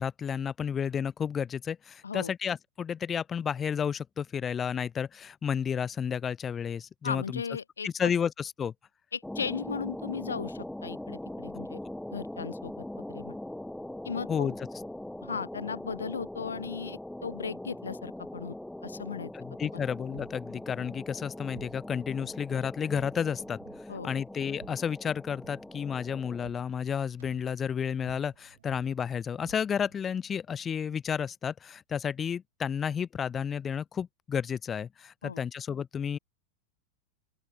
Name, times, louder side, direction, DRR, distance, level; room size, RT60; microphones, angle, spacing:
voice 1, 0.0-7.4 7.8-8.7 14.3-14.5 19.3-23.6 24.0-36.2, left 7 dB, 20° left, 0.3 m, -32 dB
voice 2, 7.0-7.9 9.1-11.8 12.1-13.4 14.0-14.5 15.2-18.6 18.8-19.3 23.9-24.1 35.2-35.4, left 6 dB, 70° left, 1.9 m, -36 dB
sound 1, 9.2-26.5, left 1 dB, 5° left, 2.2 m, -41 dB
sound 2, 19.5-30.1, right 10 dB, 65° right, 3.7 m, -55 dB
open air
figure-of-eight pair, 90°, 0 cm